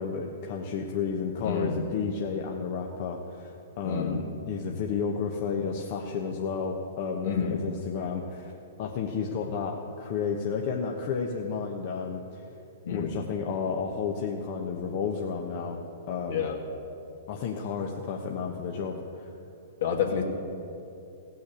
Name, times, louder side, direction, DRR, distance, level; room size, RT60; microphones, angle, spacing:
voice 1, 0.0-8.5 8.8-12.4 12.9-15.8 16.1-16.4 17.3-19.3, left 5 dB, 50° left, 1 dB, 1.1 m, -32 dB
voice 2, 1.4-1.9 3.8-4.2 7.2-7.6 12.8-13.2 16.3-16.6 19.8-20.2, left 6 dB, 70° left, 1 dB, 2.2 m, -29 dB
16.5 x 6.3 x 8.6 m, 2.8 s
hypercardioid pair, 125°, 0 cm